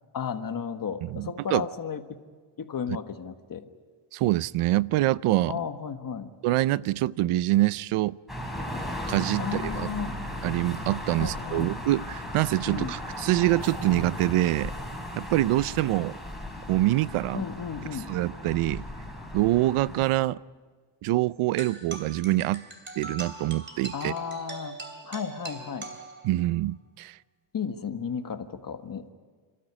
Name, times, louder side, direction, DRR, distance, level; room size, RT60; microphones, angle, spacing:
voice 1, 0.1-2.2 2.6-3.7 5.5-6.3 9.4-10.2 11.2-11.7 12.6-12.9 17.3-18.1 23.9-24.8 25.0-25.9 27.5-29.1, left 7 dB, 40° left, 1.5 m, -34 dB
voice 2, 1.0-1.7 4.1-5.6 6.4-8.2 9.1-9.9 10.4-14.7 15.2-16.1 16.7-17.4 18.1-18.8 19.3-20.4 21.0-22.6 23.0-24.1 26.2-27.2, right 16 dB, 90° right, 0.6 m, -25 dB
sound 1, 8.3-20.1, left 1 dB, ahead, 4.5 m, -36 dB
sound 2, 21.6-26.6, right 3 dB, 25° right, 3.0 m, -41 dB
29.0 x 13.0 x 9.9 m
cardioid pair, 110°, 49 cm